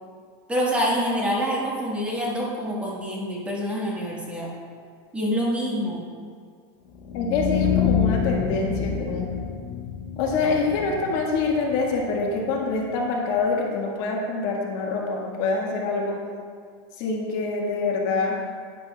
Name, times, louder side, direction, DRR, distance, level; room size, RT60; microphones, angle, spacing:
voice 1, 0.5-4.5 5.1-6.0, equal, 10° right, -4 dB, 1.6 m, -26 dB
sound 1, 6.9-12.9, left 7 dB, 75° left, 1.2 m, -27 dB
voice 2, 7.1-9.3 10.2-16.2 16.9-18.4, left 3 dB, 55° left, -1 dB, 1.7 m, -25 dB
11.0 x 9.8 x 2.4 m, 2.1 s
supercardioid pair, 140°, 14 cm